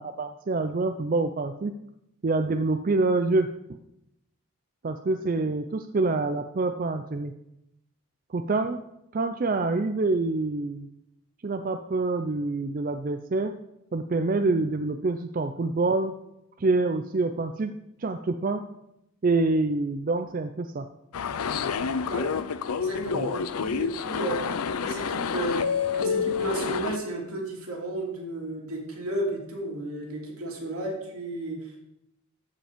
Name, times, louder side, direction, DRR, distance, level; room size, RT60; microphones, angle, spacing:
voice 1, 0.0-1.7 2.2-3.5 4.8-7.3 8.3-8.8 9.1-10.9 11.4-13.5 13.9-16.1 16.6-17.7 18.0-18.6 19.2-20.9 23.1-23.3, right 3 dB, 40° right, 8 dB, 0.4 m, -26 dB
sound 1, 21.1-27.0, left 6 dB, 85° left, 0.5 m, -28 dB
voice 2, 22.7-25.7 26.0-31.9, right 1 dB, 85° right, -2 dB, 3.0 m, -33 dB
14.0 x 5.2 x 5.1 m, 0.84 s
head